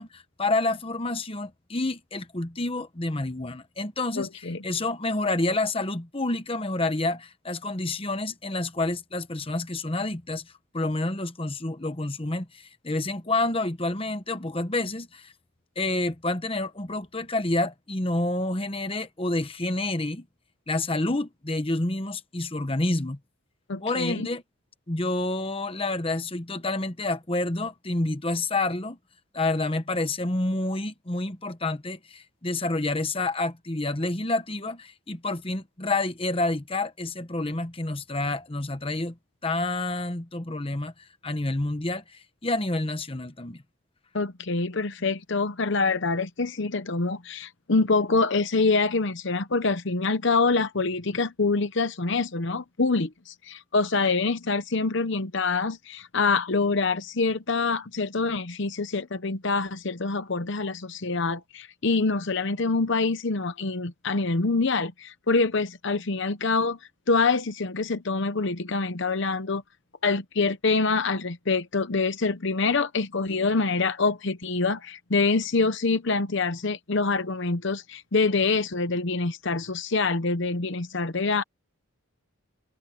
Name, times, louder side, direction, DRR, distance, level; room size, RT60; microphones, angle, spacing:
voice 1, 0.0-10.4 10.7-15.3 15.8-20.2 20.7-23.2 23.8-24.4 24.9-29.0 29.3-39.1 39.4-40.9 41.2-43.6, left 2 dB, 25° left, 1.1 m, -28 dB
voice 2, 4.2-4.6 23.7-24.3 44.1-66.8 67.1-69.6 70.0-81.4, left 3 dB, 55° left, 0.9 m, -25 dB
head